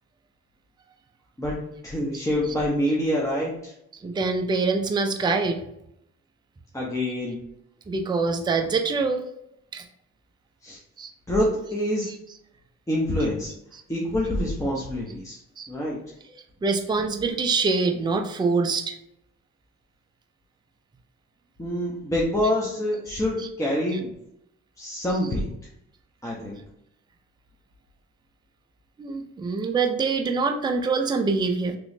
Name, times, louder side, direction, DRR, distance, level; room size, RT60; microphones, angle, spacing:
voice 1, 1.4-3.7 6.7-7.4 10.6-10.8 11.3-12.1 12.9-13.5 13.9-15.4 15.7-16.0 21.6-24.1 24.8-25.5 26.2-26.6, left 1 dB, 10° left, -4 dB, 0.7 m, -26 dB
voice 2, 2.1-2.6 4.0-5.6 7.9-9.2 9.7-9.8 11.0-11.1 13.7-13.8 15.6-15.7 16.6-19.0 23.4-23.5 25.1-25.3 29.0-31.8, right 4 dB, 15° right, 4 dB, 0.4 m, -25 dB
3.0 x 3.0 x 2.6 m, 0.77 s
cardioid pair, 90°, 30 cm